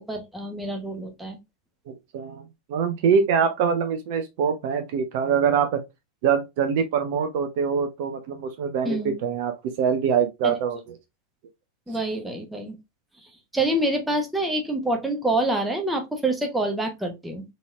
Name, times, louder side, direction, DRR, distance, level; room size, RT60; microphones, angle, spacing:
voice 1, 0.0-1.4 8.8-9.2 10.4-10.5 11.9-12.7 13.2-17.4, right 1 dB, 5° right, 0.9 m, -27 dB
voice 2, 1.9-2.4 2.7-5.8 6.2-10.8, right 7 dB, 50° right, 0.6 m, -24 dB
4.0 x 3.0 x 2.4 m
figure-of-eight pair, 90°, 0 cm